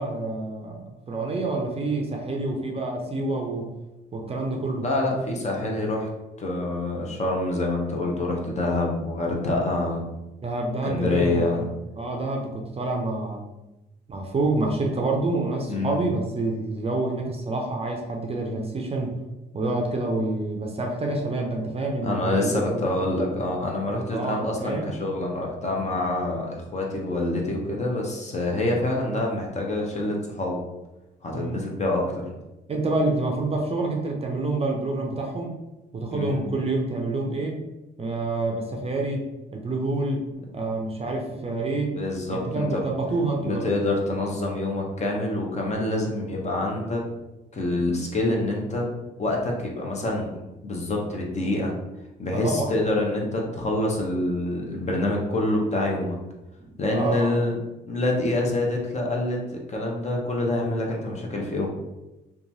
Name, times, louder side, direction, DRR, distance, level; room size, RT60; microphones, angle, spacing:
voice 1, 0.0-3.7 4.1-4.8 10.4-11.7 12.0-13.4 14.1-19.1 19.5-22.8 24.1-24.9 31.3-31.6 32.7-35.6 35.9-37.6 38.0-40.2 40.5-42.0 42.3-43.7 52.3-52.7 56.9-57.4, right 2 dB, 30° right, 1 dB, 0.5 m, -27 dB
voice 2, 4.8-6.1 6.4-10.0 10.8-11.6 15.7-16.0 22.0-30.6 31.2-32.2 36.1-36.5 42.0-42.8 43.4-47.0 47.5-48.9 49.2-51.7 52.2-56.2 56.8-57.6 57.9-59.4 59.7-61.7, left 2 dB, 35° left, -1 dB, 0.7 m, -26 dB
2.9 x 2.3 x 2.6 m, 0.99 s
cardioid pair, 90°, 20 cm